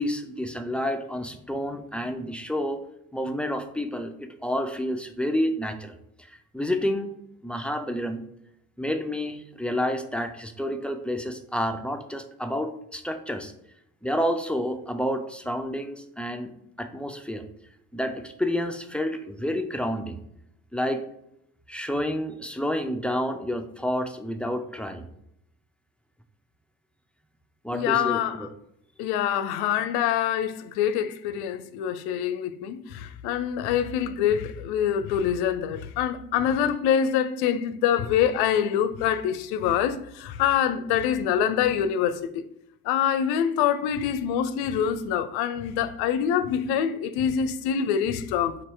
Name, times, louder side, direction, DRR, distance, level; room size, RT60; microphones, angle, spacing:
voice 1, 0.0-2.8 3.1-5.9 6.3-7.1 7.4-8.2 8.8-13.5 14.0-16.5 16.8-17.4 17.9-20.2 20.7-21.0 21.7-25.1 27.6-28.5, equal, 5° left, 0.4 m, -29 dB
voice 2, 27.7-28.5 29.0-42.5 42.8-48.6, left 9 dB, 60° left, 0.6 m, -25 dB
4.1 x 2.6 x 4.6 m
figure-of-eight pair, 45°, 44 cm